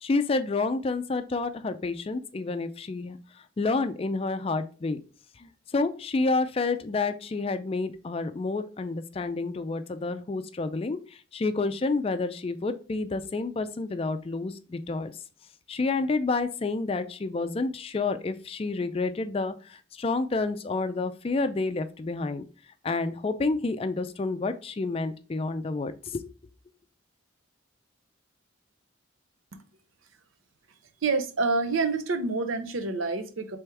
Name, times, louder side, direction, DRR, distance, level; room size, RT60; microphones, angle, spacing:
voice 1, 0.0-3.2 3.6-5.0 5.4-11.0 11.3-15.1 15.7-22.4 22.8-26.2, left 3 dB, 30° left, 0.3 m, -29 dB
voice 2, 31.0-33.6, right 3 dB, 85° right, 0.6 m, -27 dB
3.4 x 3.3 x 4.6 m
head